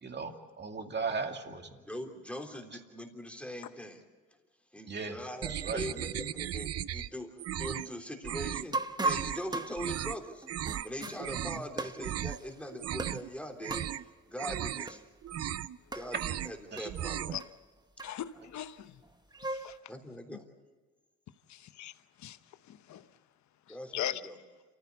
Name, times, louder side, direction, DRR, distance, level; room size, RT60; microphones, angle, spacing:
voice 1, 0.0-1.8 4.9-5.2 5.5-5.8 11.5-11.6 16.7-16.9, right 4 dB, 35° right, 2.5 m, -37 dB
voice 2, 1.8-4.0 4.7-7.3 7.6-8.8 9.0-10.5 10.8-13.9 14.3-15.0 15.9-16.2 16.4-17.4 19.9-20.5 23.7-24.3, equal, 5° left, 3.3 m, -41 dB
sound 1, 5.4-7.1 7.4-7.9 8.2-8.7 9.0-9.4 9.8-10.2 10.5-10.9 11.2-11.6 12.0-12.4 12.7-13.3 13.6-14.0 14.4-14.9 15.2-15.8 16.1-16.6 16.8-17.4, right 11 dB, 55° right, 0.6 m, -36 dB
sound 2, 8.7-11.3 11.8-12.5 13.0-13.3 13.7-14.0 14.8-15.0 15.3-15.4 15.9-16.2 16.8-16.9 17.4-17.5 18.0-18.4 19.1-19.8, right 3 dB, 15° right, 1.0 m, -36 dB
voice 3, 18.0-19.0 19.5-19.8 20.3-20.4 21.5-21.9 22.2-22.4 22.7-23.1 23.7-24.2, left 11 dB, 70° left, 1.0 m, -39 dB
28.0 x 15.0 x 8.3 m
cardioid pair, 90°, 30 cm